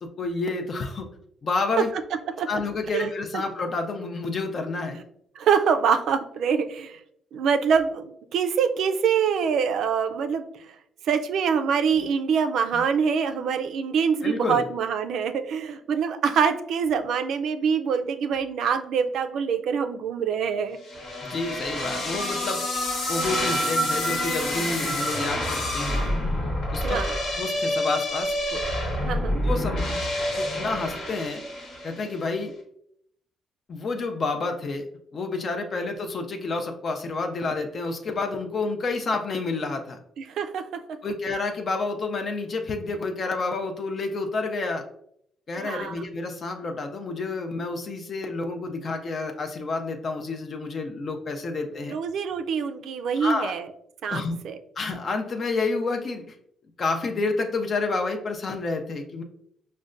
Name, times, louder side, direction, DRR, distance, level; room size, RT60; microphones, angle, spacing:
voice 1, 0.0-1.1 1.4-1.9 2.5-5.0 12.0-12.1 12.7-12.8 14.2-14.6 21.2-22.6 23.1-26.1 26.7-27.0 27.4-28.6 29.4-29.8 30.4-31.4 31.8-32.5 33.7-34.9 35.1-40.0 41.0-44.9 45.5-52.0 53.2-53.5 54.1-54.4 54.8-56.4 56.8-59.2, left 3 dB, 45° left, 4 dB, 0.4 m, -29 dB
voice 2, 2.9-3.4 5.4-7.0 7.3-10.7 11.0-20.8 26.8-27.1 29.0-29.4 40.2-40.6 45.6-46.0 51.9-53.7 54.0-54.6, right 6 dB, 75° right, 8 dB, 0.3 m, -25 dB
sound 1, 20.9-32.1, left 1 dB, 65° left, 1.2 m, -27 dB
5.1 x 2.1 x 2.4 m, 0.72 s
cardioid pair, 90°, 0 cm